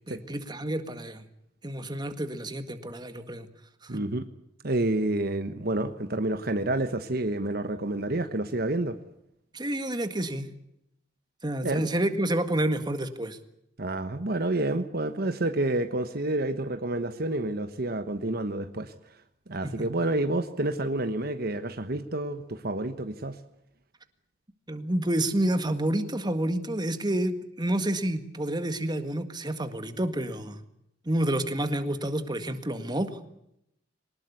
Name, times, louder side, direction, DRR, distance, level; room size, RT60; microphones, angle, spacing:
voice 1, 0.1-1.3 1.6-3.5 3.8-4.0 9.5-10.5 11.4-13.4 19.6-19.9 24.7-30.6 31.1-33.2, right 1 dB, 25° right, 9 dB, 1.9 m, -29 dB
voice 2, 3.9-4.2 4.6-9.0 11.6-11.9 13.8-18.9 19.5-23.4, right 2 dB, 55° right, 9 dB, 1.3 m, -29 dB
23.5 x 20.0 x 8.3 m, 0.78 s
head